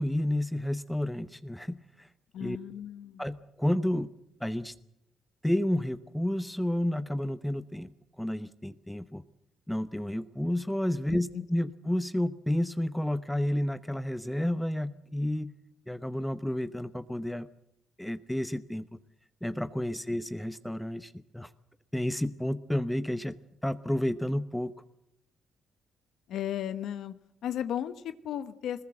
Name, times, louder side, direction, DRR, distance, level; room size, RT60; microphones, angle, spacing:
voice 1, 0.0-2.1 2.4-2.6 3.2-4.1 4.4-4.7 5.4-7.9 8.2-9.2 9.7-15.5 15.9-17.5 18.0-18.9 19.4-21.5 21.9-23.4 23.6-24.7, left 1 dB, 5° left, 12 dB, 0.8 m, -31 dB
voice 2, 2.3-3.2 11.3-11.4 26.3-27.1 27.4-28.8, left 10 dB, 75° left, 11 dB, 1.0 m, -35 dB
22.0 x 20.5 x 7.8 m, 0.76 s
cardioid pair, 90°, 0 cm